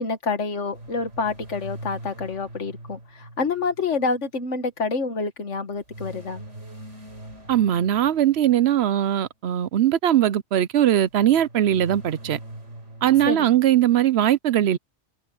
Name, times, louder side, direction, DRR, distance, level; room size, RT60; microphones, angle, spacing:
voice 1, 0.0-6.4 13.3-13.6, left 4 dB, 85° left, 2.0 m, -27 dB
sound 1, 0.7-4.3 5.9-9.0 11.1-13.3, right 1 dB, 85° right, 4.9 m, -41 dB
voice 2, 7.5-12.4 13.0-14.8, right 11 dB, 65° right, 0.9 m, -20 dB
omnidirectional pair, 1.2 m